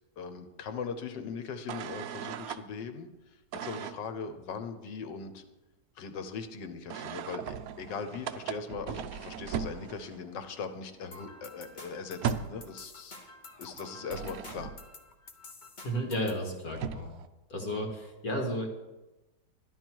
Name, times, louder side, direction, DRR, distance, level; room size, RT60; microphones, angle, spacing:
voice 1, 0.2-5.4 5.9-13.1 13.6-14.7, left 5 dB, 85° left, 8 dB, 1.7 m, -40 dB
sound 1, 1.7-2.6 3.5-4.0 6.9-10.3 10.6-10.8 11.0-12.7 13.7-14.9 16.4-16.5 16.7-17.3, right 8 dB, 65° right, 1.0 m, -38 dB
sound 2, 11.1-16.4, left 2 dB, 30° left, 1.0 m, -50 dB
voice 2, 15.8-17.1 17.5-18.7, equal, 55° left, 1 dB, 2.2 m, -33 dB
12.5 x 11.0 x 4.6 m, 1.1 s
omnidirectional pair, 1.9 m